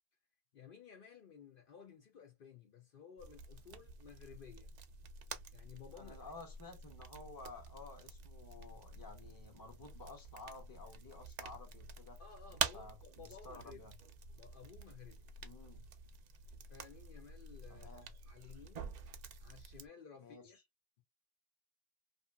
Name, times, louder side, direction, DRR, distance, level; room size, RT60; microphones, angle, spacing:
voice 1, 0.5-4.7 5.5-6.2 12.2-13.9 14.3-15.2 16.7-18.9 19.4-20.6, left 7 dB, 65° left, 0.8 m, -56 dB
sound 1, 3.2-19.9, right 6 dB, 55° right, 0.5 m, -47 dB
voice 2, 5.9-12.2 12.7-13.9 15.4-15.9 17.7-18.1 20.2-20.5, left 3 dB, 20° left, 0.8 m, -53 dB
2.7 x 2.6 x 2.2 m
omnidirectional pair, 1.0 m